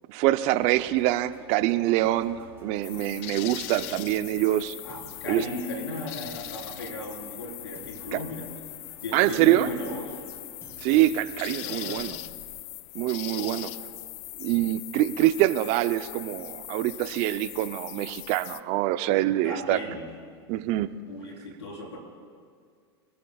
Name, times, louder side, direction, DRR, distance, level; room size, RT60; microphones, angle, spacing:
voice 1, 0.1-4.8 5.3-5.4 8.1-8.2 9.1-9.7 10.8-12.2 12.9-13.7 14.4-19.8 20.5-20.9, right 15 dB, 50° right, 12 dB, 0.7 m, -25 dB
sound 1, 0.6-12.0, right 2 dB, 15° right, 4.2 m, -52 dB
sound 2, 2.8-18.6, left 18 dB, 50° left, 0.5 m, -40 dB
voice 2, 4.8-8.5 9.0-10.2 11.1-11.2 11.6-12.2 13.3-13.7 19.4-20.0 21.0-22.0, left 2 dB, 90° left, -1 dB, 4.3 m, -36 dB
25.5 x 14.0 x 2.4 m, 2.1 s
hypercardioid pair, 100°, 14 cm